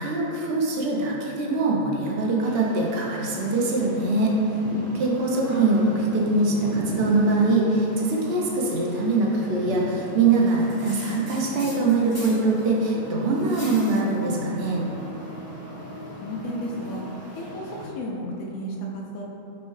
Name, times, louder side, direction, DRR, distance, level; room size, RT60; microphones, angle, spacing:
voice 1, 0.0-4.4 4.9-14.8, right 3 dB, 60° right, -2 dB, 0.7 m, -23 dB
sound 1, 2.4-17.9, equal, 10° left, 1.2 m, -38 dB
voice 2, 16.2-17.0 17.4-19.2, equal, 75° left, -2 dB, 1.0 m, -33 dB
6.1 x 2.2 x 3.1 m, 2.9 s
omnidirectional pair, 1.6 m